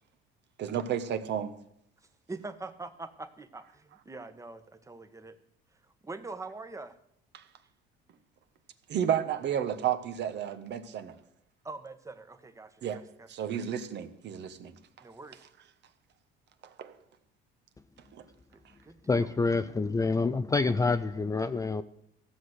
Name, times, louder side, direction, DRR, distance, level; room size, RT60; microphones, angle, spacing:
voice 1, 0.6-1.6 7.3-7.4 8.9-11.1 12.8-13.0 13.3-14.7 16.6-16.9 18.1-18.2, right 9 dB, 55° right, 1.3 m, -32 dB
voice 2, 2.3-5.4 5.7-7.0 11.6-13.3 15.0-15.5 18.5-19.3, right 3 dB, 15° right, 1.2 m, -44 dB
voice 3, 19.1-21.8, left 3 dB, 15° left, 0.5 m, -27 dB
15.0 x 6.2 x 8.0 m
supercardioid pair, 95°, 21 cm